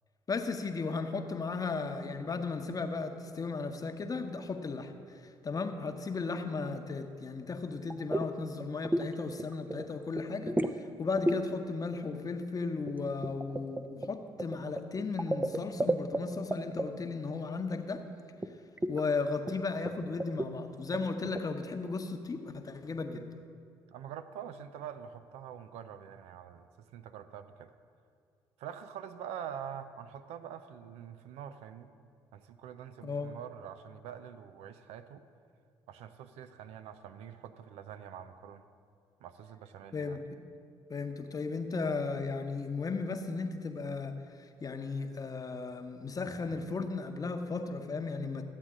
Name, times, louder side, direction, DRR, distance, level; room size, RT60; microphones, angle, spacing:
voice 1, 0.3-18.0 18.9-23.2 33.0-33.3 39.9-40.4 40.9-48.4, left 4 dB, 35° left, 7 dB, 0.9 m, -35 dB
sound 1, 7.9-8.3 8.6-9.1 9.4-9.9 10.2-10.8 11.2-11.4 12.9-16.2 16.5-16.9 18.4-18.5 18.8-19.0 19.5-19.6 19.9-20.0 20.2-20.5 20.9-21.4, right 1 dB, 15° right, 0.6 m, -31 dB
voice 2, 23.9-26.7 26.9-27.7 28.6-31.9 32.3-35.2 35.9-38.6 39.2-40.2, right 9 dB, 70° right, 10 dB, 0.5 m, -45 dB
13.0 x 8.2 x 3.7 m, 2.4 s
hypercardioid pair, 55°, 11 cm